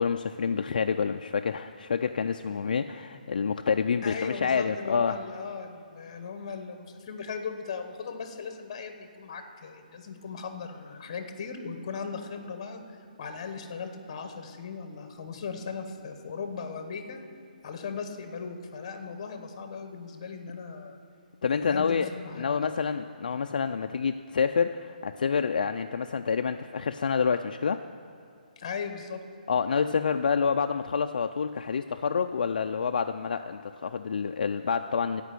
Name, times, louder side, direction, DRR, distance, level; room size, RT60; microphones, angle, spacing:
voice 1, 0.0-5.2 21.4-22.1 22.4-27.8 29.5-35.2, left 6 dB, 65° left, 6 dB, 0.4 m, -28 dB
voice 2, 4.0-17.2 17.6-21.0 21.5-22.7 28.6-29.2, left 5 dB, 35° left, 7 dB, 1.0 m, -38 dB
14.0 x 5.2 x 8.3 m, 2.5 s
hypercardioid pair, 170°, 5 cm